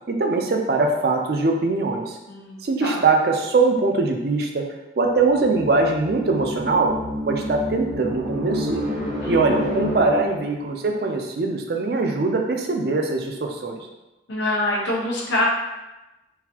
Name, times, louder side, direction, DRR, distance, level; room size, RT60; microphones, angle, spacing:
voice 1, 0.1-2.2 2.6-4.7 5.0-6.9 7.3-8.9 9.3-13.8, right 3 dB, 55° right, 2 dB, 0.4 m, -22 dB
voice 2, 2.3-3.0 9.2-9.7 14.3-15.5, left 1 dB, 90° left, -4 dB, 0.9 m, -26 dB
sound 1, 5.0-10.6, equal, 85° right, 0.9 m, -29 dB
3.9 x 2.5 x 2.8 m, 1.0 s
head